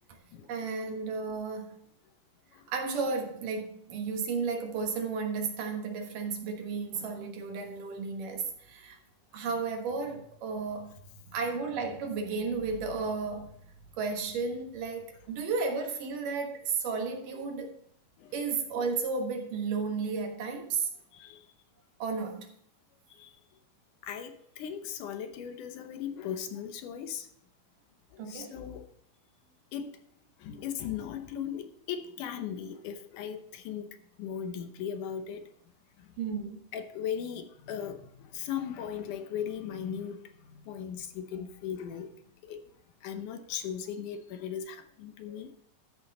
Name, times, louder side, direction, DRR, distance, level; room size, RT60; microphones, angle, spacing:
voice 1, 0.5-1.8 2.7-9.0 9.3-13.5 13.9-17.8 18.3-20.9 22.0-22.5 28.2-28.6 30.5-30.6 36.2-36.6, right 4 dB, 80° right, 3.0 m, -33 dB
voice 2, 24.0-27.3 28.1-28.9 29.7-29.9 30.4-35.5 36.1-36.2 36.7-42.1 42.4-42.6 43.0-45.5, left 8 dB, 75° left, 2.3 m, -38 dB
13.5 x 6.2 x 4.1 m
omnidirectional pair, 3.8 m